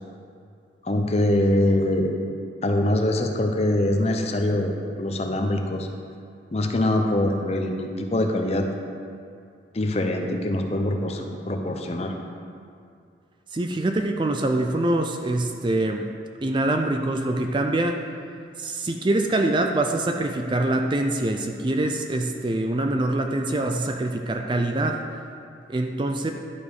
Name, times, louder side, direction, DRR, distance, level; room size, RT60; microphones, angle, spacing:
voice 1, 0.8-2.1 2.6-5.9 6.5-8.7 9.7-12.1, left 1 dB, 35° left, 4 dB, 0.6 m, -23 dB
voice 2, 13.5-16.1 16.4-18.0 18.6-25.0 25.7-26.3, right 2 dB, 25° right, 4 dB, 0.4 m, -24 dB
11.0 x 5.2 x 4.8 m, 2.4 s
head